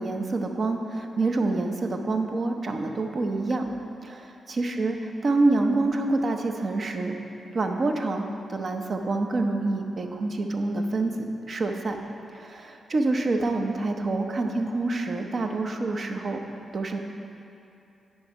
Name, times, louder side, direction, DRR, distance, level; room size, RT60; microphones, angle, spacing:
voice 1, 0.0-3.7 4.0-4.3 4.6-7.2 7.5-11.1 11.5-12.0 12.4-16.4 16.7-17.0, right 2 dB, 50° right, 4 dB, 0.7 m, -27 dB
9.4 x 5.0 x 4.7 m, 2.8 s
cardioid pair, 75°, 0 cm